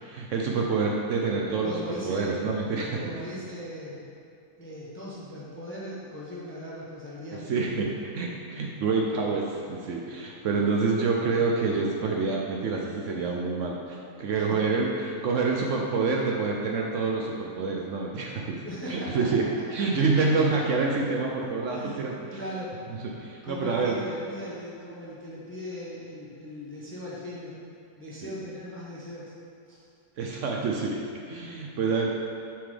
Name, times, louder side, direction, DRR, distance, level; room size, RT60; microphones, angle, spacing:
voice 1, 0.0-1.7 2.0-3.1 7.5-18.6 18.9-19.4 19.7-22.4 23.2-24.0 28.2-28.3 30.2-31.0 31.3-32.1, right 4 dB, 65° right, -1 dB, 0.8 m, -27 dB
voice 2, 1.6-2.5 3.0-4.2 4.6-7.4 14.5-14.7 18.6-19.3 21.7-22.7 23.4-27.6 28.0-29.3 29.7-29.8, left 1 dB, 15° left, -6 dB, 0.5 m, -38 dB
5.8 x 3.7 x 4.9 m, 2.5 s
omnidirectional pair, 1.6 m